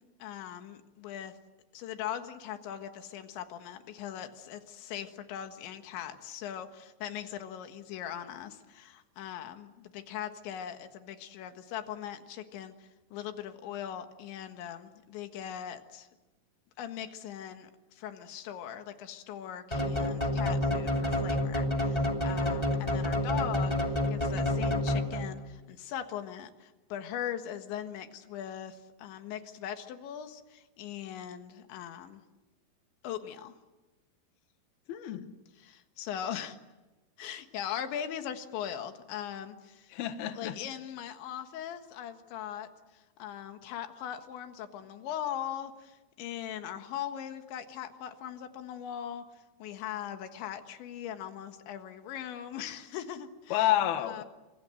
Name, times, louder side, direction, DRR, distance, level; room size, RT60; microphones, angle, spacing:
voice 1, 0.0-1.4 1.7-16.1 16.8-32.2 33.0-33.6 35.6-36.6 37.2-39.9 40.4-53.7 54.0-54.2, left 10 dB, 85° left, 7 dB, 3.9 m, -40 dB
sound 1, 19.7-25.5, left 1 dB, 15° left, 1.6 m, -29 dB
voice 2, 34.9-35.3 39.9-40.6 53.5-54.2, left 12 dB, 65° left, 8 dB, 3.1 m, -29 dB
28.0 x 25.5 x 7.8 m, 1.1 s
omnidirectional pair, 5.1 m